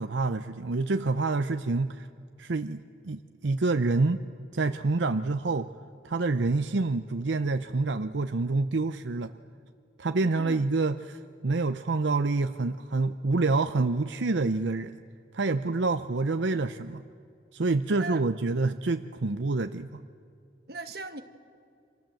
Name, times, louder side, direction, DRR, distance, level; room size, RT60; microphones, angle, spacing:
voice 1, 0.0-2.1 2.4-4.3 4.5-5.7 6.0-9.3 10.0-14.9 15.3-17.0 17.5-19.9, right 3 dB, 75° right, 9 dB, 0.7 m, -27 dB
voice 2, 17.9-18.2 20.7-21.2, right 2 dB, 55° right, 7 dB, 1.5 m, -38 dB
29.0 x 26.0 x 7.7 m, 2.6 s
head